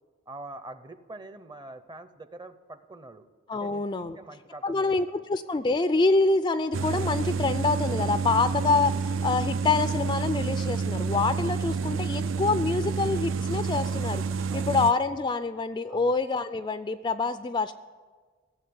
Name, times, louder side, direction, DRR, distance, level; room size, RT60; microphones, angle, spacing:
voice 1, 0.3-3.2 3.5-5.2 14.5-14.8 15.9-16.2, right 2 dB, 20° right, 11 dB, 0.6 m, -45 dB
voice 2, 3.5-4.2 4.6-14.2 14.5-17.7, left 3 dB, 20° left, 11 dB, 0.3 m, -26 dB
sound 1, 6.7-14.9, right 5 dB, 75° right, 0.5 m, -29 dB
16.0 x 7.6 x 9.5 m, 1.5 s
head